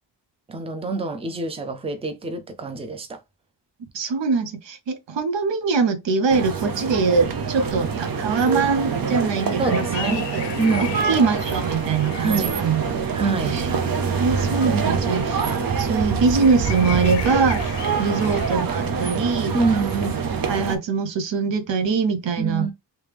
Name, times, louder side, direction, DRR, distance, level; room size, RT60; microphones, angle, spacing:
voice 1, 0.5-3.2 9.6-10.2 10.6-10.9 12.2-12.6 13.1-13.5 19.5-20.0 22.4-22.7, right 3 dB, 15° right, 0.5 m, -26 dB
voice 2, 3.9-10.4 11.1-12.8 13.2-13.7 14.2-15.4 15.8-17.6 18.0-19.5 19.8-20.1 20.4-22.7, right 4 dB, 85° right, 0.8 m, -23 dB
sound 1, 6.3-20.8, right 5 dB, 55° right, 0.7 m, -25 dB
sound 2, 7.7-18.6, left 11 dB, 75° left, 0.5 m, -39 dB
3.2 x 3.0 x 3.4 m
wide cardioid pair, 155°, 43 cm